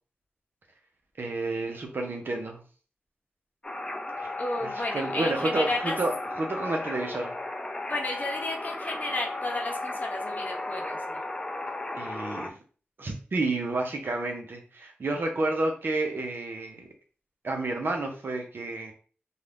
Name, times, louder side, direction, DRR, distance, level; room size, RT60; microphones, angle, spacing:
voice 1, 1.2-2.6 4.2-4.3 4.6-7.3 11.9-12.5 13.0-16.9 17.4-18.9, right 2 dB, 65° right, 2 dB, 0.7 m, -30 dB
sound 1, 3.6-12.5, left 2 dB, 20° left, 0.4 m, -35 dB
voice 2, 4.4-6.0 7.9-11.2, left 2 dB, 45° left, 2 dB, 0.7 m, -33 dB
2.6 x 2.3 x 3.3 m, 0.40 s
wide cardioid pair, 85°, 4 cm